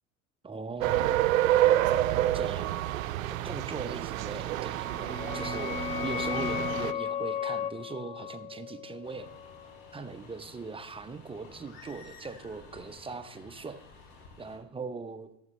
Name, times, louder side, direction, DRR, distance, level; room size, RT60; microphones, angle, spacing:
voice 1, 0.4-1.4 2.3-2.7 3.3-9.3 9.9-13.8 14.4-15.3, right 4 dB, 15° right, 8 dB, 0.7 m, -40 dB
sound 1, 0.8-6.9, right 13 dB, 85° right, 0.5 m, -28 dB
sound 2, 4.7-10.1, left 8 dB, 20° left, 0.4 m, -35 dB
sound 3, 9.0-14.6, left 3 dB, 60° left, 3.3 m, -52 dB
13.5 x 7.1 x 3.2 m, 0.87 s
hypercardioid pair, 85°, 40 cm